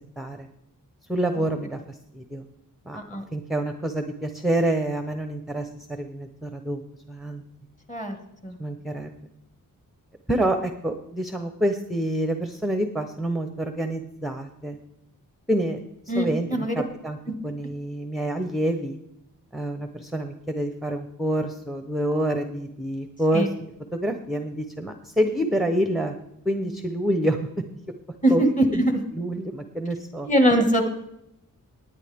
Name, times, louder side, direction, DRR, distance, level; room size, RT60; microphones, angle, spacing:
voice 1, 0.2-0.5 1.1-2.5 2.9-3.0 3.3-6.8 7.1-7.4 8.6-9.1 10.3-14.8 15.5-15.8 16.1-17.2 17.4-19.0 19.5-23.5 23.9-26.2 26.4-27.4 28.3-28.4 28.7-28.8 29.1-30.3, right 1 dB, ahead, 7 dB, 0.7 m, -27 dB
voice 2, 16.1-16.8 23.3-23.5 28.2-29.0 30.3-30.9, right 1 dB, 20° left, 5 dB, 1.7 m, -21 dB
19.0 x 9.8 x 3.5 m, 0.84 s
wide cardioid pair, 140°, 34 cm